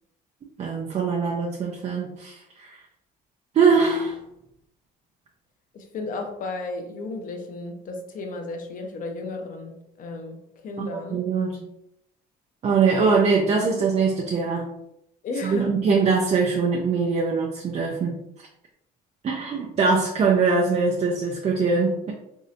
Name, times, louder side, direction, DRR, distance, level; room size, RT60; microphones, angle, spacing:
voice 1, 0.6-2.8 3.5-4.2 10.8-11.7 12.6-14.7 15.4-18.2 19.2-22.1, right 4 dB, 40° right, -1 dB, 0.5 m, -22 dB
voice 2, 5.7-11.2 15.2-15.7, left 3 dB, 50° left, 3 dB, 0.7 m, -34 dB
3.0 x 2.7 x 2.7 m, 0.83 s
cardioid pair, 110°, 17 cm